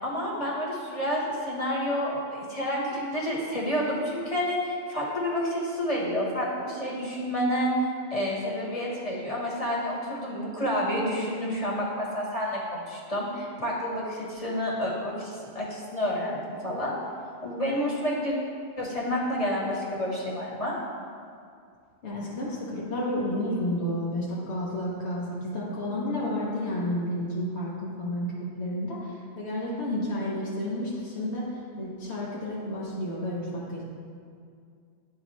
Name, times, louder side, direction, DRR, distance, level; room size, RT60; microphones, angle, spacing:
voice 1, 0.0-7.7 8.1-16.9 17.4-18.3 18.8-20.7, equal, 35° left, -5 dB, 1.3 m, -29 dB
voice 2, 22.0-33.8, left 1 dB, 90° left, -6 dB, 1.3 m, -31 dB
10.0 x 3.8 x 3.0 m, 2.3 s
omnidirectional pair, 1.1 m